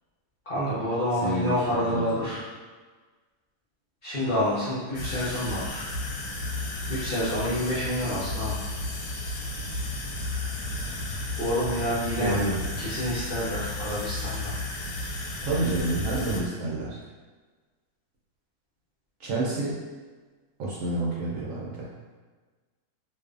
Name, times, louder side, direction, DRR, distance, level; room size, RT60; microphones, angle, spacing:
voice 1, 0.5-2.4 4.0-5.9 6.9-8.5 11.4-12.3 12.8-14.5 15.0-15.1, left 1 dB, 60° left, -10 dB, 0.6 m, -28 dB
voice 2, 1.2-1.6 1.9-2.4 12.2-12.6 15.4-17.0 19.2-19.8 20.6-21.9, right 2 dB, 70° right, -5 dB, 0.8 m, -29 dB
sound 1, 4.9-16.4, left 2 dB, 85° left, 1.2 m, -33 dB
2.5 x 2.3 x 2.4 m, 1.4 s
omnidirectional pair, 1.7 m